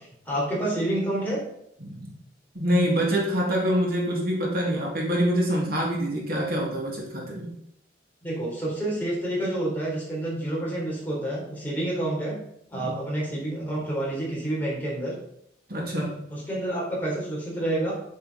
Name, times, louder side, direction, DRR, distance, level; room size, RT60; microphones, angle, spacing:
voice 1, 0.0-1.4 8.2-12.4 12.7-15.2 16.3-17.9, right 1 dB, 10° left, -5 dB, 3.7 m, -28 dB
voice 2, 1.8-2.1 2.5-7.5 12.7-13.0 15.7-16.2, equal, 50° right, -2 dB, 2.2 m, -25 dB
8.7 x 7.9 x 4.1 m, 0.74 s
head